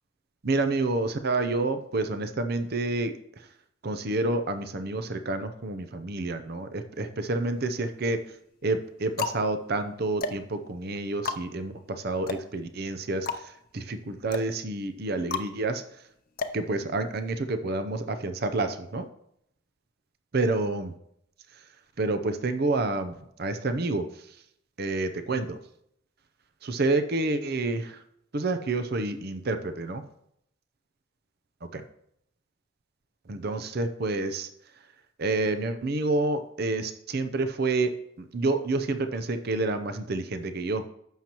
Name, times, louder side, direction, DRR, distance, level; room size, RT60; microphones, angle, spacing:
voice 1, 0.4-3.5 3.8-8.2 8.6-16.0 16.5-19.1 20.3-20.9 21.5-21.6 22.0-23.1 23.4-24.4 24.8-25.6 26.6-28.0 28.3-30.0 31.6-31.8 33.3-34.5 35.2-37.9 38.2-40.9, right 2 dB, 50° right, 9 dB, 0.6 m, -29 dB
sound 1, 7.2-7.9 8.6-17.4, left 4 dB, 45° left, 0.6 m, -36 dB
11.5 x 7.4 x 3.0 m, 0.74 s
head